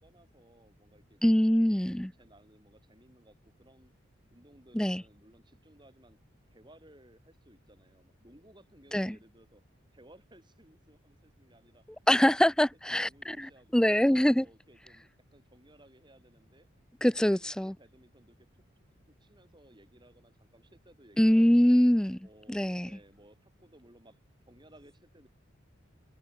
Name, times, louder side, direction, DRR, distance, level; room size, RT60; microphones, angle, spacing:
voice 1, 0.0-1.2 1.7-3.9 4.3-6.2 6.5-9.6 9.9-12.3 12.8-13.9 14.3-16.7 17.1-18.5 19.1-21.8 22.2-25.3, right 1 dB, 20° right, 7.5 m, -60 dB
voice 2, 1.2-2.1 4.7-5.0 8.9-9.2 12.1-14.5 17.0-17.7 21.2-22.2 22.5-22.9, equal, 5° left, 0.4 m, -24 dB
head